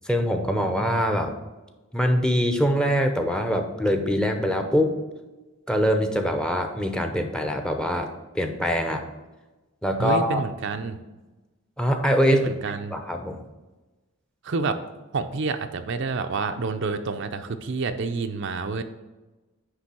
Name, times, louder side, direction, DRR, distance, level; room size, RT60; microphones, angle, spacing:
voice 1, 0.1-1.3 1.9-5.0 5.7-8.1 8.3-9.0 9.8-10.4 11.8-12.5 12.9-13.4, equal, 5° left, 5 dB, 0.7 m, -23 dB
voice 2, 10.0-11.0 12.3-13.0 14.4-14.7 15.1-18.8, right 4 dB, 60° right, 7 dB, 0.5 m, -28 dB
9.7 x 3.3 x 6.1 m, 1.1 s
head